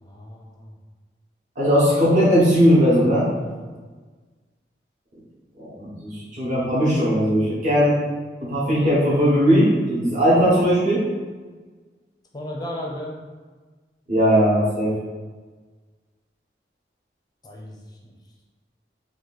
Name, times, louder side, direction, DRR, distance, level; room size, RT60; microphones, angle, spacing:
voice 1, 0.0-0.7 3.4-3.7 12.3-13.2 17.4-17.8, left 1 dB, 25° left, -1 dB, 0.5 m, -34 dB
voice 2, 1.6-3.3 5.6-7.9 8.4-11.0 14.1-14.9, equal, 45° right, -9 dB, 1.1 m, -18 dB
3.1 x 2.5 x 4.0 m, 1.4 s
head